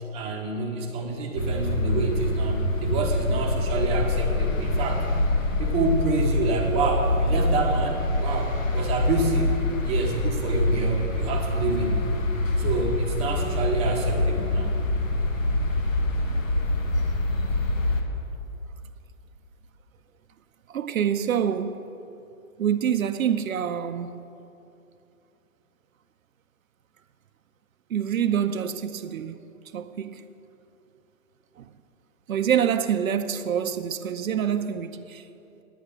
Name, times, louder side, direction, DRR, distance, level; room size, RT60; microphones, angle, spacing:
voice 1, 0.1-5.1 5.6-9.5 9.8-12.1 12.6-14.7, right 3 dB, 15° right, 0.9 m, -28 dB
sound 1, 1.4-18.0, left 2 dB, 65° left, 1.6 m, -25 dB
voice 2, 20.7-21.8 22.6-24.2 27.9-29.4 29.7-30.2 31.6-31.7 32.3-35.3, right 8 dB, 75° right, 0.7 m, -26 dB
10.0 x 9.4 x 6.7 m
hypercardioid pair, 145°, 42 cm